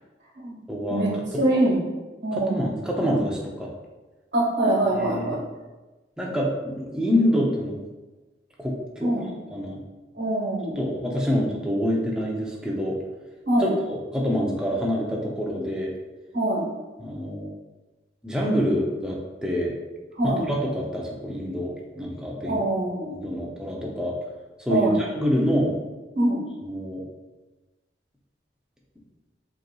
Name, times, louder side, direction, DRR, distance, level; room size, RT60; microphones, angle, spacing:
voice 1, 0.7-1.0 1.3-1.4 2.3-3.7 4.9-5.4 6.2-7.8 8.6-9.2 9.5-9.8 10.8-13.0 13.6-15.9 17.0-17.5 18.2-19.7 20.2-22.6 23.1-24.2 24.6-25.7 26.6-27.0, equal, 5° right, -3 dB, 0.5 m, -26 dB
voice 2, 1.4-1.8 2.2-2.6 4.3-5.4 9.0-9.3 10.1-10.7 13.5-13.7 16.3-16.6 20.2-20.4 22.4-23.1 24.7-25.0 26.1-26.4, right 1 dB, 70° right, -8 dB, 1.2 m, -23 dB
5.1 x 3.0 x 2.3 m, 1.2 s
head